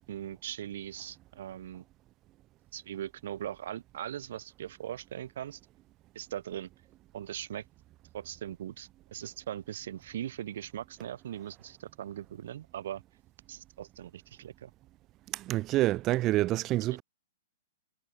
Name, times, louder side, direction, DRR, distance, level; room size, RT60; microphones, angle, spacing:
voice 1, 0.0-1.8 2.7-5.6 6.1-6.7 7.1-7.6 8.1-13.0 13.5-14.7, right 11 dB, 55° right, 1.6 m, -40 dB
voice 2, 15.3-17.0, right 16 dB, 30° right, 0.7 m, -27 dB
figure-of-eight pair, 110°, 0 cm